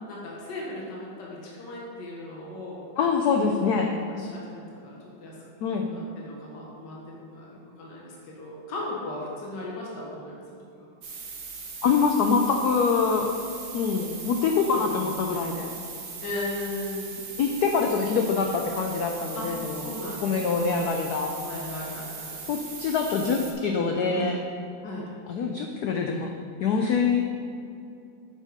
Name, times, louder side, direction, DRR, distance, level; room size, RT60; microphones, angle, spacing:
voice 1, 0.1-2.9 3.8-5.4 5.9-10.9 14.7-15.2 16.2-17.1 19.3-20.7 21.4-22.4 24.0-24.5 24.8-25.1, left 1 dB, 60° left, -4 dB, 2.0 m, -37 dB
voice 2, 3.0-3.9 5.6-5.9 11.8-13.3 13.7-15.7 17.4-19.8 20.2-21.3 22.5-24.4 25.3-26.3 26.6-27.2, left 5 dB, 75° left, 3 dB, 0.9 m, -24 dB
sound 1, 11.0-23.5, right 4 dB, 65° right, 1.8 m, -39 dB
7.6 x 6.4 x 5.1 m, 2.6 s
omnidirectional pair, 2.3 m